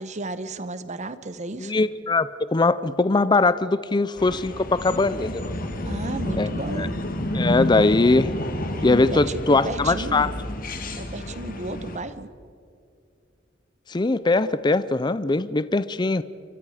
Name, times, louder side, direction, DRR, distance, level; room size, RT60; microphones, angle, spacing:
voice 1, 0.0-1.9 5.8-6.9 9.0-10.4 11.0-12.3, right 2 dB, 40° right, 13 dB, 1.0 m, -34 dB
voice 2, 1.6-5.4 6.4-6.9 7.3-8.3 8.8-10.3 13.9-16.2, left 3 dB, 25° left, 15 dB, 0.5 m, -21 dB
sound 1, 4.2-12.0, left 1 dB, 50° left, 2.1 m, -30 dB
28.5 x 24.5 x 5.0 m, 2.4 s
head